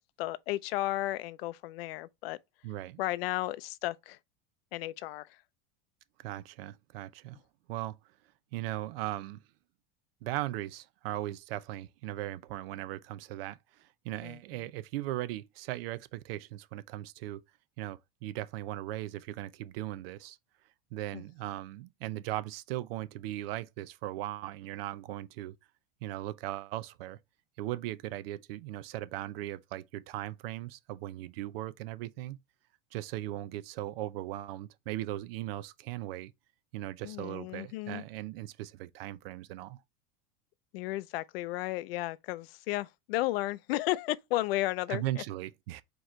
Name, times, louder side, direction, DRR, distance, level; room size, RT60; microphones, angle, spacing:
voice 1, 0.2-2.4 3.0-4.2 4.7-5.3 14.2-14.4 21.1-21.2 37.0-38.0 40.7-45.2, left 17 dB, 80° left, 0.5 m, -33 dB
voice 2, 2.6-3.0 6.2-7.4 7.7-8.0 8.5-9.4 10.2-17.4 17.8-20.4 20.9-25.6 26.0-27.2 27.6-32.4 32.9-36.3 36.7-39.8 44.9-45.8, right 15 dB, 75° right, 0.6 m, -38 dB
4.6 x 3.0 x 3.1 m
supercardioid pair, 160°, 29 cm